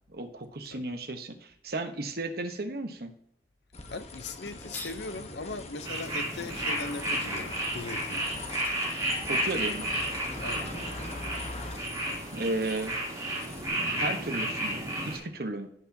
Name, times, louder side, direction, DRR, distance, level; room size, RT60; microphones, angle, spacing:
voice 1, 0.1-3.1 9.3-9.9 12.3-13.0 14.0-15.7, right 2 dB, 60° right, 7 dB, 1.1 m, -34 dB
sound 1, 3.7-13.7, left 3 dB, 40° left, 1.1 m, -42 dB
voice 2, 3.9-8.3 10.4-10.8, left 3 dB, 80° left, 11 dB, 0.8 m, -39 dB
sound 2, 4.5-5.1 8.0-8.1 8.5-9.9, left 2 dB, 10° left, 1.0 m, -46 dB
sound 3, 5.8-15.2, right 1 dB, 20° right, 3.1 m, -32 dB
16.5 x 5.9 x 2.8 m, 0.72 s
head